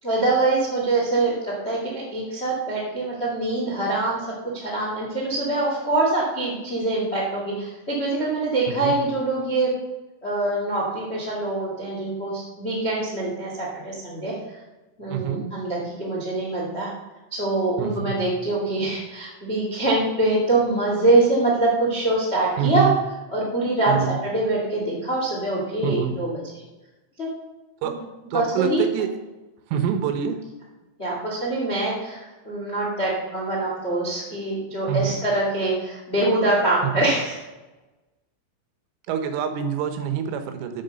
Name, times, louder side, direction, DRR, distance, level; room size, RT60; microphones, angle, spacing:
voice 1, 0.0-4.2 4.5-9.7 10.2-14.3 15.0-16.9 17.3-22.9 23.3-26.4 27.2-27.3 28.3-28.8 31.0-37.4, right 2 dB, 65° left, -5 dB, 0.6 m, -24 dB
voice 2, 15.1-15.5 17.8-18.2 22.6-23.0 23.9-24.2 25.8-26.1 27.8-27.9 28.3-29.1 29.7-30.4 34.9-35.2 36.8-37.1 39.1-40.8, right 8 dB, 80° right, 7 dB, 3.2 m, -26 dB
8.0 x 7.9 x 6.7 m, 1.1 s
omnidirectional pair, 6.0 m